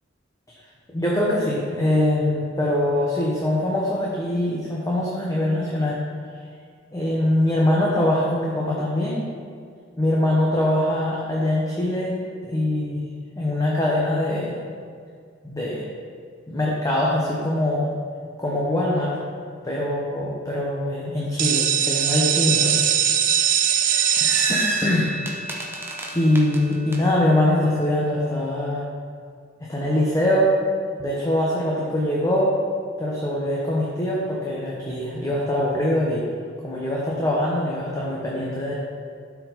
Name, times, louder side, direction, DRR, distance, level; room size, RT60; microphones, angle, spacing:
voice 1, 0.9-6.0 6.9-9.2 10.0-12.2 12.4-13.1 13.4-14.6 15.4-15.8 16.5-17.9 18.4-19.2 19.6-22.7 24.2-25.1 26.1-28.8 29.7-30.5 31.0-32.5 33.0-36.3 36.6-38.7, left 1 dB, 20° left, -5 dB, 1.0 m, -23 dB
sound 1, 21.4-27.0, right 9 dB, 45° right, 0.4 m, -23 dB
sound 2, 23.7-27.0, right 1 dB, 10° right, 0.8 m, -31 dB
12.0 x 4.7 x 4.0 m, 2.1 s
head